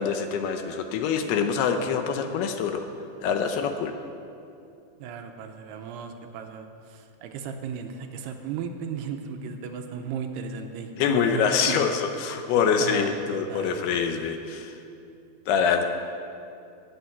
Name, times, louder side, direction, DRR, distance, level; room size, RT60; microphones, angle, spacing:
voice 1, 0.0-2.8 3.2-3.9 11.0-14.7 15.5-15.8, left 6 dB, 75° left, 6 dB, 2.6 m, -25 dB
voice 2, 5.0-12.0 12.6-13.9, right 6 dB, 80° right, 5 dB, 2.7 m, -35 dB
13.5 x 8.6 x 9.6 m, 2.6 s
omnidirectional pair, 4.9 m